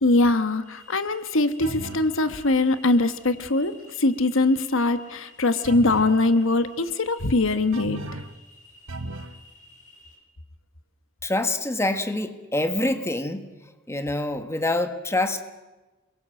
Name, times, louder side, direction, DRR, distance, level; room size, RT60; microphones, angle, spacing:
voice 1, 0.0-8.0, left 2 dB, 65° left, 11 dB, 1.3 m, -22 dB
sound 1, 0.6-10.2, left 2 dB, 35° left, 6.8 m, -52 dB
sound 2, 1.6-2.1 5.6-6.2 7.7-8.4 8.9-9.4, right 2 dB, 85° right, 1.2 m, -35 dB
voice 2, 11.2-15.4, left 2 dB, 15° left, 8 dB, 1.7 m, -26 dB
28.5 x 22.5 x 7.7 m, 1.2 s
head